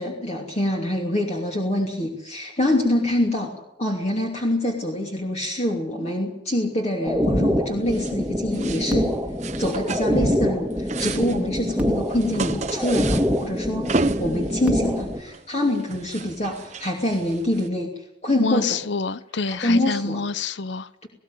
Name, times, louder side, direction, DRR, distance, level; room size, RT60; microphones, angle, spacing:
voice 1, 0.0-3.5 3.8-9.1 9.6-17.9 18.2-18.8 19.5-20.2 21.0-21.1, left 1 dB, 35° left, 2.9 m, -25 dB
sound 1, 7.0-15.2, equal, 10° right, 1.8 m, -25 dB
sound 2, 7.9-8.2 8.5-9.0 9.4-10.4 10.7-17.7, right 3 dB, 40° right, 0.9 m, -33 dB
voice 2, 18.4-21.1, left 4 dB, 70° left, 0.8 m, -27 dB
19.0 x 17.5 x 9.2 m
head